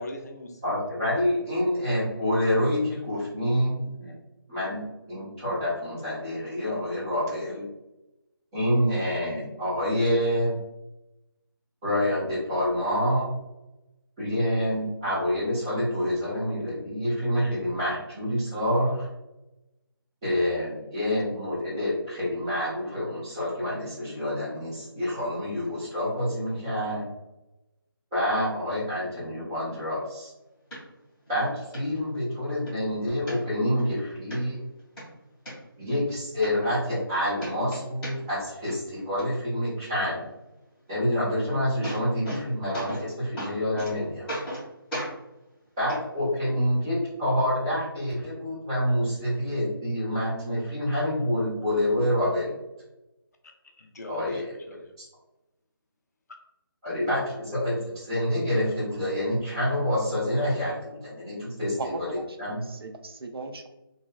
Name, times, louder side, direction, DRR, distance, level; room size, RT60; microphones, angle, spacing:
voice 1, 0.0-0.9 53.6-54.9, left 1 dB, 45° left, 3 dB, 0.5 m, -40 dB
voice 2, 0.6-4.1 4.5-4.8 5.1-7.6 8.5-10.6 11.8-13.3 14.2-19.1 20.2-27.1 28.1-30.3 31.3-31.5 31.7-34.6 35.8-40.2 40.9-44.3 45.8-52.5 54.1-54.6 56.8-62.1 62.4-62.6, left 1 dB, 15° right, -11 dB, 1.2 m, -27 dB
sound 1, 30.7-30.8 31.3-31.4 31.7-31.8 32.3-32.8 33.3-33.8 34.3-34.4 34.8-35.5 36.1-36.2 36.4-37.1 37.4-38.4 38.7-39.2 41.3-41.4 41.6-42.4 42.7-43.1 43.4-43.9 44.3-44.6 44.9-45.1 45.9-46.0 46.9-47.0, right 1 dB, 5° left, 1.3 m, -35 dB
voice 3, 61.8-63.7, right 3 dB, 80° right, 5 dB, 0.5 m, -38 dB
2.9 x 2.7 x 2.3 m, 0.94 s
figure-of-eight pair, 170°, 12 cm